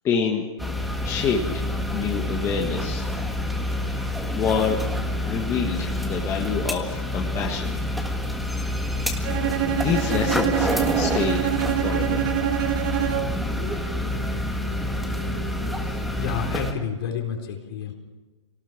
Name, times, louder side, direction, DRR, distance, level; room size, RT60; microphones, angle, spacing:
voice 1, 0.0-0.4 1.0-1.6 1.9-3.1 3.8-4.8 5.2-7.8 9.2-12.3, left 6 dB, 20° left, 0 dB, 1.7 m, -27 dB
sound 1, 0.6-16.7, left 1 dB, ahead, 1.6 m, -27 dB
Bowed string instrument, 9.2-13.5, right 12 dB, 45° right, 1.6 m, -26 dB
voice 2, 15.8-17.9, left 7 dB, 55° left, 2 dB, 4.2 m, -30 dB
24.0 x 18.5 x 6.1 m, 1.3 s
hypercardioid pair, 155°, 15 cm